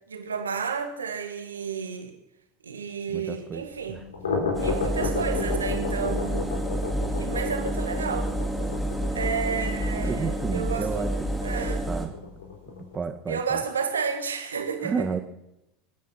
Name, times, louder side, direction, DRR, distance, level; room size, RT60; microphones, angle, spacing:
voice 1, 0.1-2.1 2.6-4.1 4.6-6.5 7.2-8.3 9.1-11.9 13.3-15.1, right 6 dB, 85° right, 1.9 m, -31 dB
voice 2, 3.1-4.0 4.4-4.7 9.0-9.1 10.0-11.1 11.9-12.1 12.9-13.6 14.8-15.2, right 5 dB, 25° right, 1.7 m, -32 dB
sound 1, 3.9-13.0, left 4 dB, 80° left, 3.6 m, -33 dB
Engine, 4.5-12.1, right 1 dB, ahead, 4.4 m, -29 dB
25.5 x 9.6 x 5.9 m
figure-of-eight pair, 80°, 0 cm